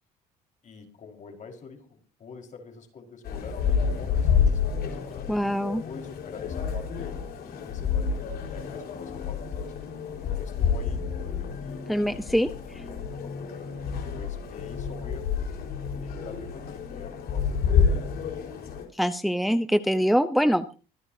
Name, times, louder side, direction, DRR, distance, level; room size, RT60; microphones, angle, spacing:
voice 1, 0.6-5.3 5.8-10.0 10.4-13.6 14.1-15.3 16.0-18.6, left 5 dB, 45° left, 3 dB, 4.8 m, -46 dB
sound 1, 3.2-18.8, left 6 dB, 65° left, 4.7 m, -29 dB
voice 2, 5.3-5.8 11.9-12.8 18.9-20.8, equal, ahead, 10 dB, 0.8 m, -24 dB
25.0 x 10.5 x 2.8 m, 0.34 s
cardioid pair, 110°, 17 cm